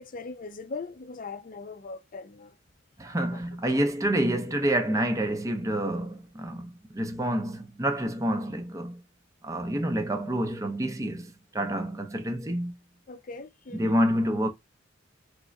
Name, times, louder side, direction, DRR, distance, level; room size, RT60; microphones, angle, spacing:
voice 1, 0.0-2.6 3.3-3.4 13.1-14.0, left 4 dB, 45° left, 0.5 m, -40 dB
voice 2, 3.0-9.0 9.4-12.8 13.7-14.5, right 1 dB, 15° right, 0.6 m, -28 dB
3.6 x 3.1 x 3.9 m
head